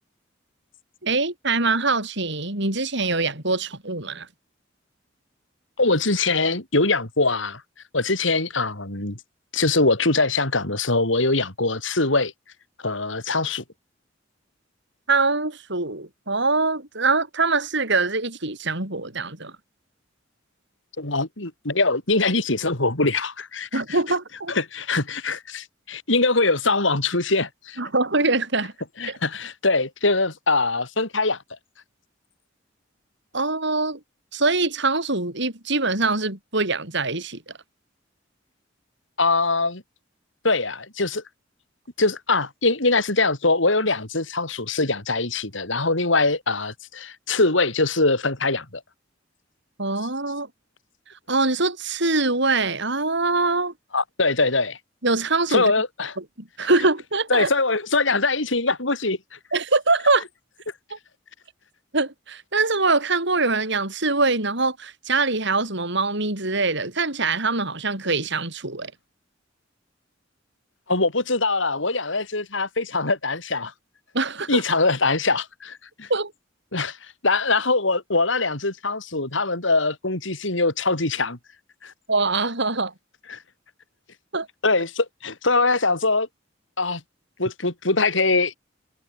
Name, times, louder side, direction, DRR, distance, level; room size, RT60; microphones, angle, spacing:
voice 1, 1.0-4.3 15.1-19.5 23.7-24.5 27.8-28.7 29.1-29.2 33.3-34.0 34.3-37.4 49.8-50.5 51.3-53.7 55.0-55.7 56.2-57.5 59.5-60.2 61.9-68.9 74.1-74.6 76.1-76.3 82.1-82.9 84.3-84.5, right 3 dB, 65° right, 7.6 m, -23 dB
voice 2, 5.8-7.6 7.9-9.2 9.5-12.3 12.8-13.6 21.0-23.8 24.5-27.8 29.0-31.4 39.2-39.8 40.4-41.2 42.0-48.8 53.9-54.8 55.5-56.1 57.3-59.4 70.9-73.7 74.5-76.1 76.7-77.0 77.2-81.4 81.8-81.9 83.3-83.4 84.6-86.3 86.8-87.0 87.4-88.5, left 3 dB, 70° left, 4.5 m, -22 dB
head